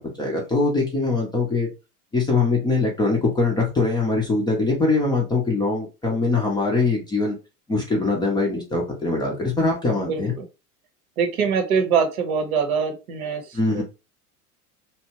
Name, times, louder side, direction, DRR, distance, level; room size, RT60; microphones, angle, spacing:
voice 1, 0.0-1.7 2.1-7.4 7.7-10.3 13.5-13.8, left 3 dB, 10° left, -1 dB, 0.5 m, -22 dB
voice 2, 9.9-10.5 11.2-13.8, right 6 dB, 65° right, 5 dB, 0.8 m, -24 dB
2.8 x 2.1 x 2.8 m, 0.28 s
figure-of-eight pair, 80°, 46 cm